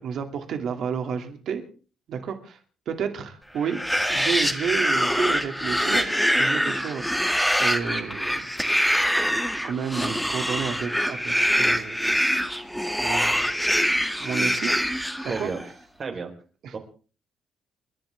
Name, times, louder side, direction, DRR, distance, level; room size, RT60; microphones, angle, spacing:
voice 1, 0.0-1.6 2.1-2.6 2.9-3.8 4.1-8.5 9.6-12.0 13.0-13.6 14.2-14.7 15.2-15.5 16.6-16.7, right 6 dB, 70° right, 6 dB, 2.6 m, -31 dB
sound 1, 3.6-15.7, equal, ahead, 2.3 m, -24 dB
voice 2, 15.3-15.6 16.0-16.3 16.7-16.8, right 5 dB, 45° right, 4 dB, 4.3 m, -31 dB
29.5 x 11.5 x 3.6 m, 0.38 s
cardioid pair, 90°, 0 cm